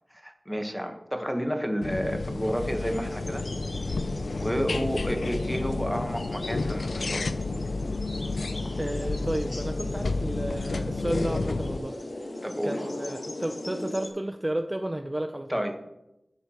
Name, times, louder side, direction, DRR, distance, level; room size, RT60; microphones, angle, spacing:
voice 1, 0.1-3.4 4.4-7.2 12.4-12.8 15.5-15.9, equal, ahead, 5 dB, 1.1 m, -30 dB
sound 1, 1.8-11.8, left 3 dB, 85° left, 0.4 m, -31 dB
sound 2, 2.8-14.1, left 1 dB, 55° left, 1.3 m, -38 dB
voice 2, 4.7-5.0 8.7-12.4 12.6-15.6, right 1 dB, 20° right, 6 dB, 0.5 m, -32 dB
11.0 x 9.2 x 3.0 m, 0.89 s
wide cardioid pair, 70°, 0 cm